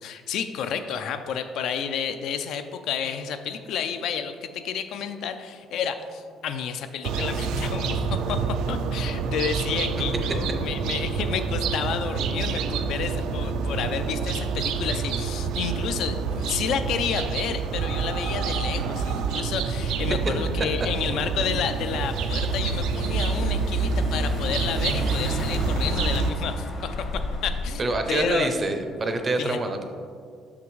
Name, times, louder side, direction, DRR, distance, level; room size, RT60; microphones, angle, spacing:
voice 1, 0.0-28.5 29.4-29.6, left 7 dB, 65° left, 8 dB, 0.4 m, -30 dB
sound 1, 7.0-26.3, right 5 dB, 80° right, 0.3 m, -27 dB
Car / Engine, 21.1-27.9, left 2 dB, 45° left, 0.9 m, -34 dB
voice 2, 27.8-29.8, right 2 dB, 25° right, 6 dB, 0.5 m, -26 dB
6.0 x 5.8 x 3.1 m, 2.2 s
cardioid pair, 155°, 0 cm